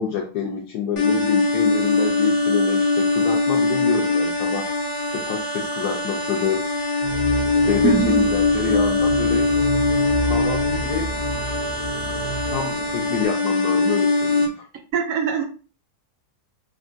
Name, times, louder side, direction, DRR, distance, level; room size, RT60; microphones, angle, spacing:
voice 1, 0.0-4.7 5.1-6.6 7.7-9.5 10.2-11.1 12.2-14.6, left 7 dB, 80° left, -1 dB, 1.1 m, -27 dB
sound 1, 1.0-14.5, left 3 dB, 60° left, 0.4 m, -22 dB
sound 2, 7.0-13.3, right 1 dB, 40° right, 0.5 m, -30 dB
voice 2, 7.8-8.2 14.9-15.4, right 7 dB, 70° right, 4 dB, 0.9 m, -22 dB
3.4 x 2.2 x 2.5 m, 0.36 s
omnidirectional pair, 1.7 m